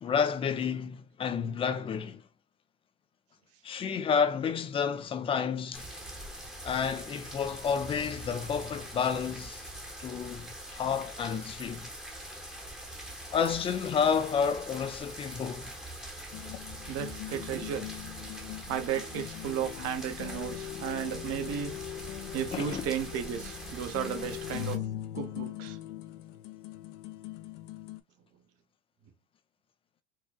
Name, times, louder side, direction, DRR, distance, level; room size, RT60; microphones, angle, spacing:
voice 1, 0.0-2.2 3.6-5.9 6.6-9.6 10.0-11.9 13.3-15.7 22.5-22.9, left 6 dB, 15° left, 0.3 m, -30 dB
sound 1, 5.7-24.8, right 1 dB, ahead, 0.9 m, -43 dB
sound 2, 16.3-28.0, left 13 dB, 60° left, 0.6 m, -41 dB
voice 2, 16.9-17.9 18.7-21.7 22.3-24.8 25.1-25.8, right 9 dB, 45° right, 0.9 m, -34 dB
4.6 x 2.3 x 2.3 m
supercardioid pair, 125°, 33 cm